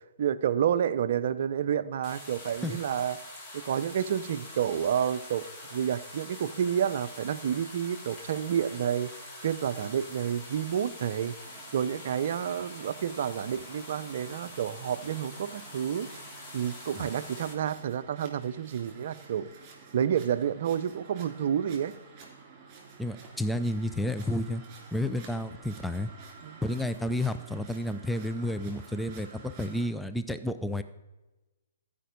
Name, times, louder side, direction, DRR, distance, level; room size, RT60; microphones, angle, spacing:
voice 1, 0.2-3.2 3.5-5.5 5.7-9.1 9.4-11.4 11.7-16.1 16.5-19.5 19.9-21.9 26.4-26.6, right 9 dB, 55° right, 13 dB, 0.5 m, -29 dB
sound 1, 2.0-17.5, left 1 dB, 25° left, 2.5 m, -45 dB
sound 2, 11.4-29.9, right 5 dB, 35° right, 3.2 m, -51 dB
voice 2, 23.0-24.6 24.9-26.1 26.6-30.8, left 1 dB, 5° left, 10 dB, 0.4 m, -31 dB
14.0 x 5.1 x 5.2 m, 1.1 s
hypercardioid pair, 130°, 0 cm